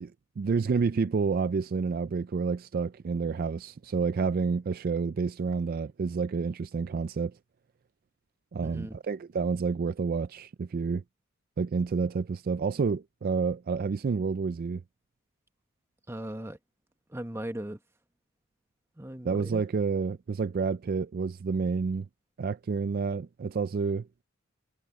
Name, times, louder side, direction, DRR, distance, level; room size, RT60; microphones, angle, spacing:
voice 1, 0.0-7.3 8.5-11.0 11.6-14.8 19.2-22.1 22.4-24.1, right 5 dB, 45° right, 0.4 m, -29 dB
voice 2, 8.6-9.0 16.1-16.6 17.1-17.8 19.0-19.6, right 1 dB, 15° right, 1.4 m, -38 dB
head